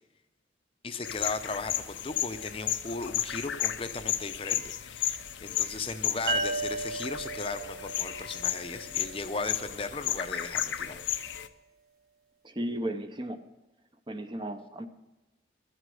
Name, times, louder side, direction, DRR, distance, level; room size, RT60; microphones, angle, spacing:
voice 1, 0.8-11.0, left 3 dB, 30° left, 8 dB, 0.6 m, -36 dB
sound 1, 1.0-11.5, left 11 dB, 85° left, 0.7 m, -34 dB
sound 2, 6.3-9.7, right 2 dB, 55° right, 2.1 m, -35 dB
voice 2, 12.4-13.4 14.1-14.9, right 1 dB, 25° right, 8 dB, 0.7 m, -34 dB
12.5 x 8.1 x 7.7 m, 1.0 s
head